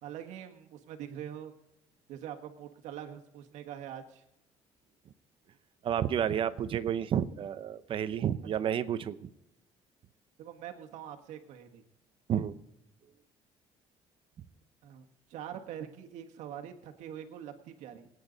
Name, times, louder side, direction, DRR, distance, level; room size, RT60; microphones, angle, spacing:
voice 1, 0.0-1.5 2.1-4.2 10.4-11.8 14.8-18.1, right 10 dB, 80° right, 4 dB, 1.6 m, -44 dB
voice 2, 5.8-9.3 12.3-12.5, right 9 dB, 45° right, 13 dB, 0.8 m, -30 dB
24.5 x 9.4 x 4.0 m, 0.95 s
cardioid pair, 135°, 12 cm